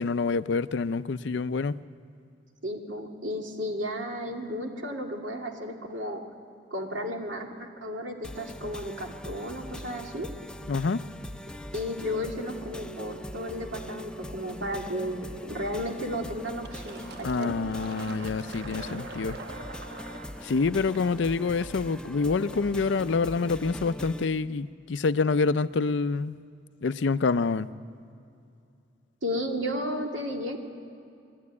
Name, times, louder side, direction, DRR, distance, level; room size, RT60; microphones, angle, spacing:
voice 1, 0.0-1.7 10.7-11.0 17.2-19.4 20.4-26.4 26.8-27.7, left 4 dB, 65° left, 0.5 m, -27 dB
voice 2, 2.6-6.2 6.7-10.3 11.7-17.6 29.2-30.6, equal, 75° right, 2.5 m, -33 dB
sound 1, 8.2-24.2, equal, 5° left, 0.5 m, -41 dB
Fill (with liquid), 16.6-22.0, right 3 dB, 60° right, 0.9 m, -44 dB
22.0 x 13.0 x 9.6 m
head